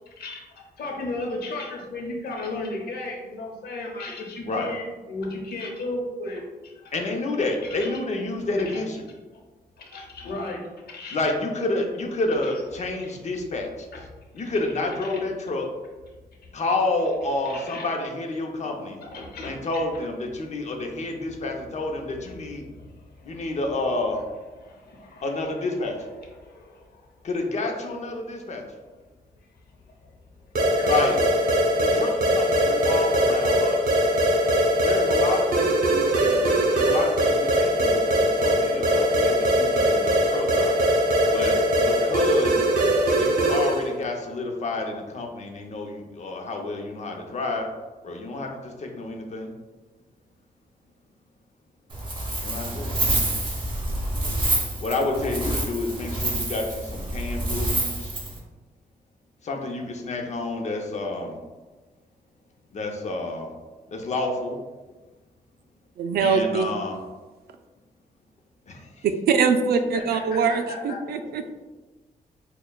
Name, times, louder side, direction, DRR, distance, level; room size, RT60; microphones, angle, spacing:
voice 1, 0.1-6.9 7.6-7.9 8.4-8.8 9.8-10.6 10.9-11.2 12.9-13.1 13.9-14.0 14.4-14.5 14.8-15.2 17.4-17.9 19.0-19.8 22.6-23.5 24.6-25.3 26.2-27.1 30.0-30.1 30.5-31.1 69.9-71.0, left 2 dB, 80° left, 1 dB, 0.9 m, -35 dB
voice 2, 6.9-9.0 11.1-13.9 14.3-15.7 16.5-19.0 19.4-22.6 23.2-24.2 25.2-25.9 27.2-28.6 30.9-31.2 31.8-34.0 34.8-40.8 41.3-42.6 43.2-47.7 48.0-49.5 52.4-53.0 54.8-58.2 59.4-61.4 62.7-63.5 63.9-64.6 66.2-67.0 68.7-69.1, left 2 dB, 45° left, 2 dB, 0.7 m, -29 dB
sound 1, 30.5-43.9, equal, 70° right, 0.8 m, -21 dB
Wind, 51.9-58.4, right 2 dB, 30° right, 1.0 m, -27 dB
voice 3, 66.0-66.7 69.3-71.5, right 5 dB, 85° right, 8 dB, 0.4 m, -23 dB
6.4 x 2.3 x 2.3 m, 1.2 s
cardioid pair, 105°, 16 cm